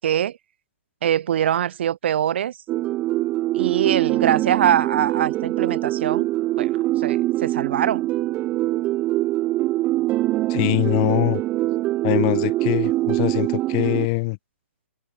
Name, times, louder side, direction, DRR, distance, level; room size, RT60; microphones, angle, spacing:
voice 1, 0.0-0.4 1.0-2.5 3.5-6.3 6.6-6.7 7.0-8.1, right 10 dB, 55° right, 0.9 m, -23 dB
sound 1, 2.7-14.1, right 16 dB, 20° right, 0.6 m, -23 dB
voice 2, 10.5-11.4 12.0-14.4, left 28 dB, 35° left, 0.9 m, -23 dB
hypercardioid pair, 140°, 7 cm